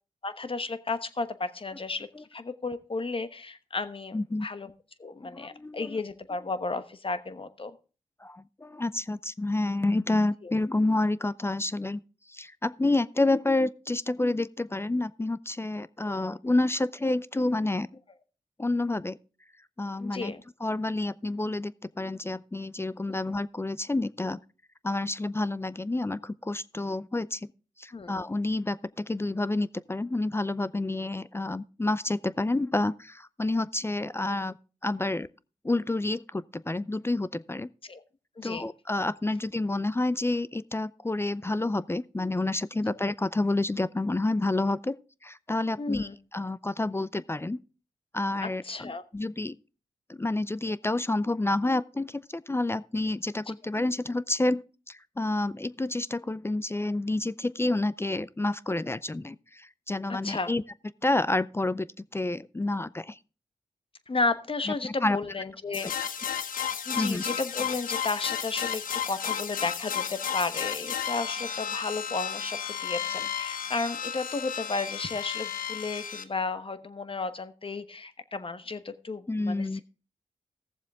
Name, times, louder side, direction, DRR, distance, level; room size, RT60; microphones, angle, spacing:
voice 1, 0.2-4.7 5.0-7.7 10.4-10.5 20.0-20.4 23.1-23.2 27.9-28.1 37.8-38.0 38.4-38.6 45.8-46.2 48.4-49.0 53.5-53.6 60.2-60.5 64.1-65.9 66.9-79.8, left 3 dB, 40° left, 1.1 m, -33 dB
voice 2, 4.1-4.5 5.2-6.0 8.2-12.0 12.3-17.9 18.6-19.2 19.8-20.3 20.6-24.4 24.8-27.5 27.8-34.5 34.8-35.3 35.6-37.7 38.4-45.0 45.2-47.6 48.1-49.6 50.1-60.6 61.0-61.9 62.1-63.2 65.0-65.2 67.0-67.2 79.3-79.8, left 2 dB, 15° left, 0.4 m, -29 dB
sound 1, 65.7-76.2, left 8 dB, 85° left, 0.8 m, -33 dB
15.5 x 7.2 x 3.6 m
cardioid pair, 45°, 14 cm